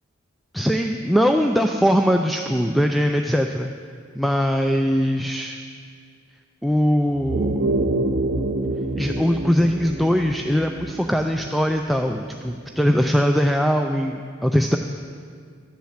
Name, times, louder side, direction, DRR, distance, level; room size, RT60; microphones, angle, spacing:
voice 1, 0.5-3.7 4.2-5.6 6.6-7.7 9.0-14.8, equal, ahead, 3 dB, 0.3 m, -21 dB
sound 1, 7.1-12.0, right 2 dB, 55° right, 0.7 m, -26 dB
11.5 x 7.3 x 7.2 m, 2.1 s
head